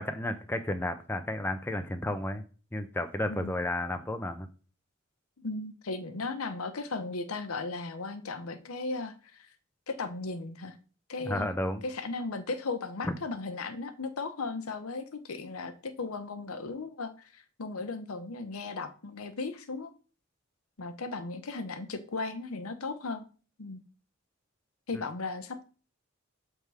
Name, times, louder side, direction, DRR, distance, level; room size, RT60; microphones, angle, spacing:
voice 1, 0.0-2.4 2.7-4.5 11.2-11.8, left 1 dB, 10° left, 7 dB, 0.5 m, -32 dB
voice 2, 5.4-9.5 9.9-10.8 11.1-11.5 11.8-19.9 20.8-23.2 23.6-23.8 24.9-25.6, left 3 dB, 90° left, 9 dB, 0.8 m, -36 dB
6.8 x 3.6 x 4.7 m, 0.37 s
head